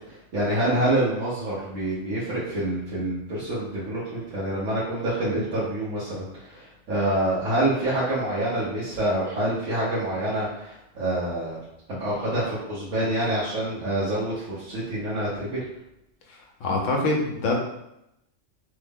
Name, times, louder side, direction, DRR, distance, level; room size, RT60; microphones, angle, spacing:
voice 1, 0.1-11.6 11.9-15.6, right 1 dB, 75° right, -10 dB, 1.3 m, -27 dB
voice 2, 16.3-17.6, left 2 dB, 75° left, 0 dB, 1.0 m, -25 dB
3.3 x 2.0 x 3.4 m, 0.84 s
omnidirectional pair, 1.3 m